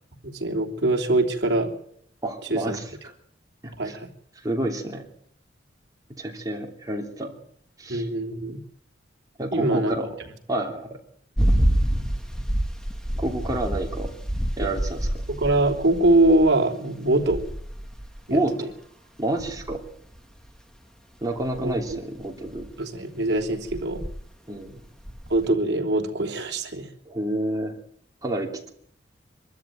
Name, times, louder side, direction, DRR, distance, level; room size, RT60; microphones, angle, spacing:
voice 1, 0.2-1.7 2.4-2.8 3.8-4.1 7.9-8.6 9.5-9.9 14.6-14.7 15.3-17.5 18.3-18.4 21.6-22.0 22.8-24.0 25.3-26.9, right 2 dB, 60° right, 1 dB, 3.3 m, -23 dB
voice 2, 2.2-2.8 3.6-3.9 4.4-5.0 6.2-7.3 7.8-8.1 9.4-10.1 10.5-11.0 13.2-14.1 14.6-15.1 18.3-18.7 19.2-19.8 21.2-22.7 24.5-24.8 27.1-27.8 28.2-28.7, right 1 dB, 20° right, 1 dB, 3.0 m, -29 dB
sound 1, 11.4-16.6 17.1-18.2 19.4-20.5 21.4-22.7 23.4-24.2 24.7-25.5, equal, 5° left, 1.9 m, -27 dB
24.5 x 13.0 x 9.2 m, 0.71 s
head